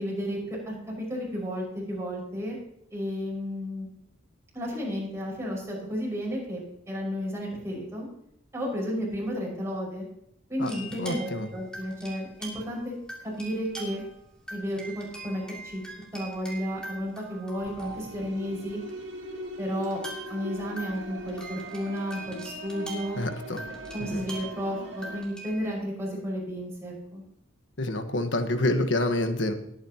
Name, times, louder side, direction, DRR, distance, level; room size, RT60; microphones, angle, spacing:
voice 1, 0.0-2.6 2.9-3.9 4.5-6.6 6.9-8.1 8.5-10.0 10.5-13.0 13.2-14.0 14.5-15.8 16.1-18.8 19.6-20.0 20.3-23.2 23.9-27.2, equal, 15° right, -4 dB, 5.8 m, -32 dB
sound 1, 10.6-12.8 13.1-14.2 14.5-18.3 18.9-19.0 19.8-25.7, right 1 dB, 5° left, 3.0 m, -43 dB
voice 2, 11.0-11.5 23.2-23.6 24.1-24.2 27.8-29.5, left 1 dB, 65° left, 7 dB, 1.4 m, -27 dB
sound 2, 17.6-25.2, right 1 dB, 70° right, 2.4 m, -41 dB
20.0 x 9.5 x 3.0 m, 0.75 s
head